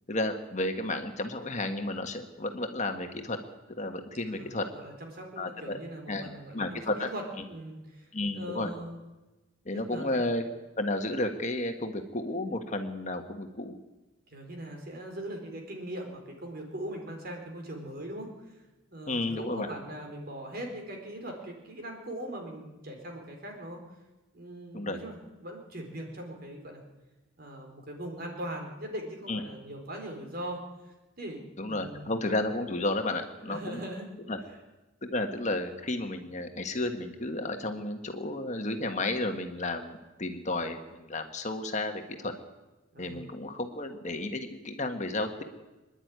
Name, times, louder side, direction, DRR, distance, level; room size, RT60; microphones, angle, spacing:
voice 1, 0.1-3.4 3.8-4.7 5.4-5.8 6.1-7.1 8.1-8.7 9.6-10.4 10.8-13.7 19.1-19.7 24.7-25.0 29.3-29.4 31.6-33.8 34.3-34.4 35.0-42.3 43.0-45.4, left 2 dB, 35° left, 5 dB, 1.6 m, -32 dB
voice 2, 4.3-7.2 7.5-8.1 8.3-9.0 9.7-10.2 14.3-18.3 18.9-23.8 24.3-26.8 27.4-30.6 31.2-32.2 33.5-34.1 42.9-43.3, right 1 dB, 50° right, 2 dB, 4.3 m, -40 dB
25.5 x 11.0 x 9.6 m, 1.1 s
head